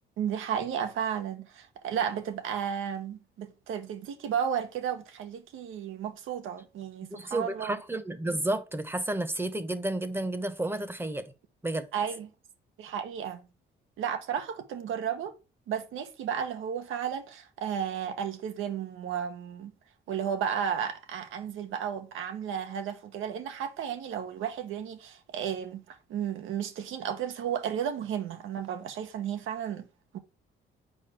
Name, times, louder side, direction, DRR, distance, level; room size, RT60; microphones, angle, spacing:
voice 1, 0.2-7.8 11.9-12.3 12.8-13.5 14.0-15.4 15.7-19.7 20.1-29.9 30.1-30.2, right 8 dB, 85° right, 1.1 m, -33 dB
voice 2, 7.1-11.3 11.6-11.9, right 1 dB, 10° right, 1.0 m, -31 dB
6.8 x 4.9 x 4.4 m
cardioid pair, 90°, 20 cm